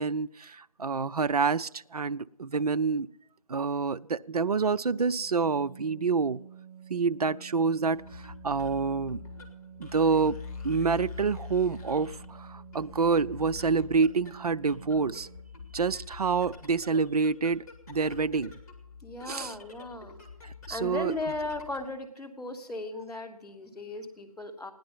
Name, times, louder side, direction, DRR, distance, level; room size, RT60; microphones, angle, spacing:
voice 1, 0.0-3.1 3.5-6.4 6.9-9.2 9.8-10.4 10.6-15.3 15.7-18.5 19.3-19.5 20.4-21.1, right 5 dB, 75° right, 14 dB, 0.5 m, -27 dB
Organ, 5.2-15.7, right 9 dB, 20° right, 0.9 m, -50 dB
sound 1, 7.9-22.0, left 5 dB, 30° left, 2.4 m, -45 dB
voice 2, 19.0-20.2 20.7-24.7, left 2 dB, ahead, -14 dB, 1.3 m, -36 dB
16.5 x 10.5 x 5.5 m, 0.81 s
figure-of-eight pair, 165°, 19 cm